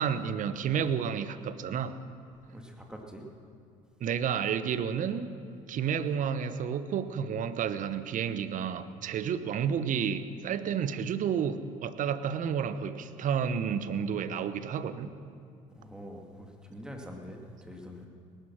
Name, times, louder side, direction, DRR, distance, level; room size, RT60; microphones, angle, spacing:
voice 1, 0.0-1.9 4.0-5.3 5.7-15.1, right 7 dB, 50° right, 12 dB, 1.0 m, -31 dB
voice 2, 2.5-3.3 15.7-18.1, equal, 5° right, 1 dB, 2.4 m, -45 dB
19.0 x 10.5 x 6.1 m, 2.3 s
hypercardioid pair, 60°, 17 cm